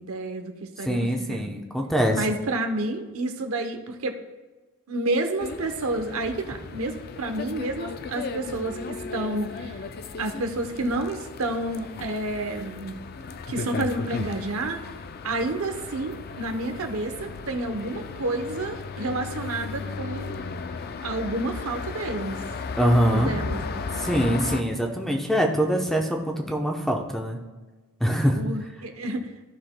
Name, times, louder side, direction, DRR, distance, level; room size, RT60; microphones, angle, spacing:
voice 1, 0.0-1.5 2.1-4.2 4.9-9.8 10.2-13.0 13.5-14.8 15.2-20.4 21.0-22.4 23.1-23.9 28.3-29.3, right 2 dB, 70° right, 5 dB, 0.8 m, -30 dB
voice 2, 0.8-2.2 22.8-23.4 23.9-27.4 28.0-28.4, equal, ahead, 1 dB, 0.8 m, -23 dB
sound 1, 5.4-24.6, left 4 dB, 45° left, 0.4 m, -35 dB
14.0 x 5.9 x 2.2 m, 1.2 s
head